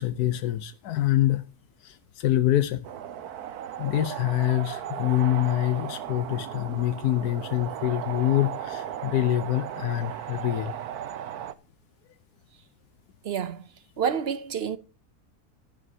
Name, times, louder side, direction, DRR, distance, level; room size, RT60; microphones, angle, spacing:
voice 1, 0.0-1.4 1.8-2.9 3.8-10.7, left 13 dB, 90° left, 1.3 m, -25 dB
sound 1, 2.8-11.5, right 10 dB, 80° right, 1.3 m, -36 dB
voice 2, 13.2-13.6 14.0-14.8, right 7 dB, 55° right, 0.7 m, -28 dB
16.0 x 11.0 x 2.7 m
omnidirectional pair, 1.6 m